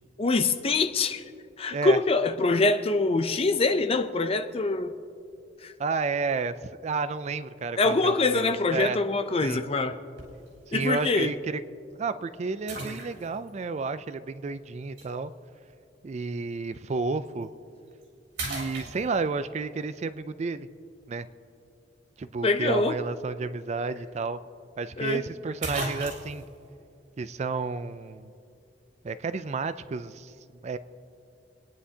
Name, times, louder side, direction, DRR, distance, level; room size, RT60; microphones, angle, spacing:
voice 1, 0.2-1.2 1.6-4.9 5.6-5.7 7.8-10.0 10.7-11.3 22.4-23.0 25.0-25.2, left 3 dB, 35° left, 9 dB, 0.5 m, -24 dB
voice 2, 5.8-9.0 9.4-9.6 10.7-11.6 12.0-15.3 16.0-17.5 18.5-20.7 21.1-21.3 22.2-24.4 24.8-26.4 27.2-28.3 29.0-30.3 30.6-30.8, right 4 dB, 40° right, 13 dB, 0.4 m, -31 dB
sound 1, 10.2-10.5 11.2-11.3 12.7-13.5 15.0-15.1 17.3-17.4 17.9-18.1 18.4-19.5 23.6-23.7 24.0-24.1 25.1-25.2 25.6-26.5, right 2 dB, 75° right, 3.6 m, -36 dB
28.5 x 10.0 x 2.8 m, 2.5 s
head